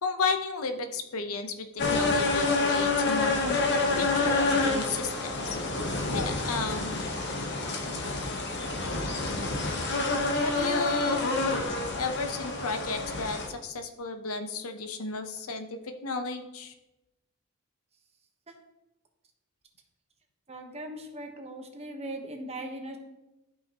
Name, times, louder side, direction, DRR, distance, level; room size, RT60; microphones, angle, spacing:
voice 1, 0.0-5.4 6.1-7.0 10.4-11.3 12.0-16.7, left 4 dB, 85° left, 7 dB, 0.8 m, -33 dB
sound 1, 1.8-13.5, left 3 dB, 55° left, 1.1 m, -28 dB
voice 2, 20.5-23.0, right 1 dB, 30° right, 3 dB, 1.0 m, -39 dB
12.5 x 5.6 x 2.9 m, 0.99 s
head